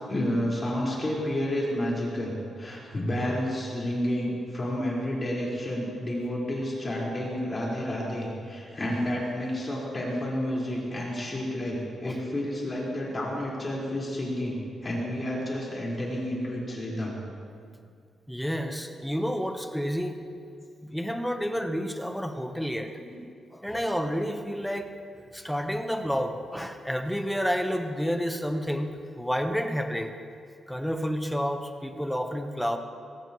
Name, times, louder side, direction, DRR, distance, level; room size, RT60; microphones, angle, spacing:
voice 1, 0.1-17.1 23.0-23.2, left 1 dB, 25° left, -5 dB, 4.6 m, -30 dB
voice 2, 18.3-20.2 20.9-22.9 23.5-24.9 25.3-30.1 30.7-32.8, equal, ahead, 5 dB, 1.0 m, -30 dB
23.0 x 17.5 x 3.1 m, 2.3 s
wide cardioid pair, 145°, 0 cm